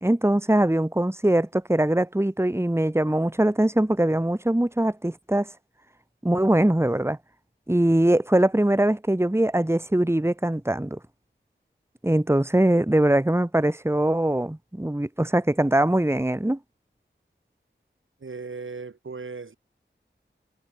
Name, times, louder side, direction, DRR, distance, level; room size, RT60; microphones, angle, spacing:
voice 1, 0.0-5.5 6.2-7.2 7.7-11.0 12.0-16.6, right 1 dB, 15° right, 1.8 m, -22 dB
voice 2, 18.2-19.6, right 4 dB, 80° right, 2.7 m, -37 dB
wide cardioid pair, 50°, 20 cm